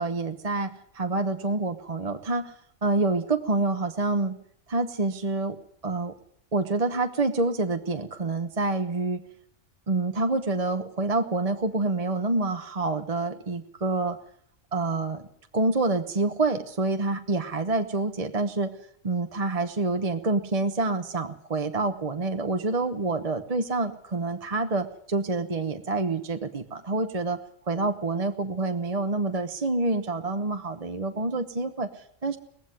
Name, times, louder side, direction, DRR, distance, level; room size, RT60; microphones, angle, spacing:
voice 1, 0.0-2.5 2.8-4.3 4.7-5.6 5.8-6.1 6.5-9.2 9.9-14.2 14.7-15.2 15.5-18.7 19.0-27.4 27.7-31.9 32.2-32.4, right 3 dB, 30° right, 7 dB, 1.1 m, -27 dB
18.5 x 15.5 x 9.7 m, 0.64 s
omnidirectional pair, 1.3 m